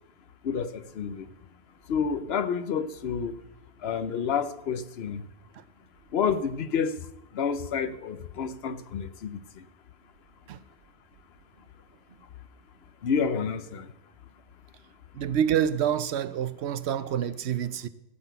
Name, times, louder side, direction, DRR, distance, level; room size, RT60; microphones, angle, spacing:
voice 1, 0.4-1.3 1.9-3.3 3.8-5.2 6.1-6.9 7.3-9.4 13.0-13.9, left 6 dB, 70° left, 0.9 m, -29 dB
voice 2, 15.1-17.9, right 9 dB, 80° right, 0.9 m, -27 dB
15.0 x 6.0 x 8.0 m
omnidirectional pair, 1.1 m